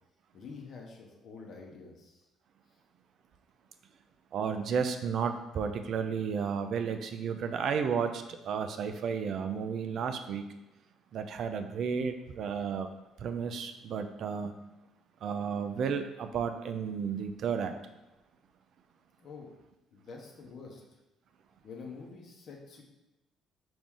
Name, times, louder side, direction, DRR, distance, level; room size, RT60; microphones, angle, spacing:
voice 1, 0.3-2.2 19.2-19.5 19.9-20.8 21.6-22.8, left 4 dB, 55° left, 0 dB, 0.9 m, -47 dB
voice 2, 4.3-10.4 11.1-12.9 13.2-14.5 15.2-17.7, right 6 dB, 60° right, 8 dB, 0.3 m, -32 dB
4.8 x 2.6 x 3.6 m, 1.0 s
hypercardioid pair, 50°, 0 cm